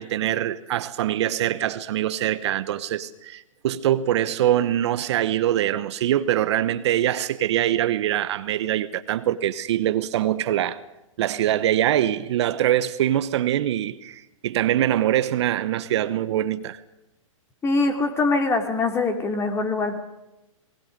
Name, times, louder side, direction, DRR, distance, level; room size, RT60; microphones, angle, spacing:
voice 1, 0.0-10.8 11.2-16.8, right 12 dB, 55° right, 1.1 m, -23 dB
voice 2, 17.6-20.0, left 3 dB, 15° left, 2.7 m, -23 dB
29.0 x 19.5 x 5.3 m
hypercardioid pair, 130°, 17 cm